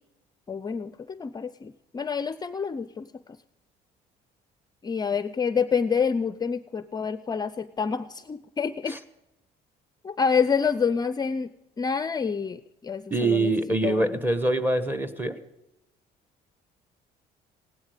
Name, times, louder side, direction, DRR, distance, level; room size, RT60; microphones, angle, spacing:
voice 1, 0.5-3.2 4.8-9.0 10.0-11.5 11.8-13.5 13.8-14.2, left 6 dB, 25° left, 14 dB, 0.5 m, -27 dB
voice 2, 13.1-15.4, right 2 dB, 10° right, 11 dB, 1.2 m, -24 dB
16.5 x 12.0 x 5.1 m, 0.91 s
cardioid pair, 110°, 17 cm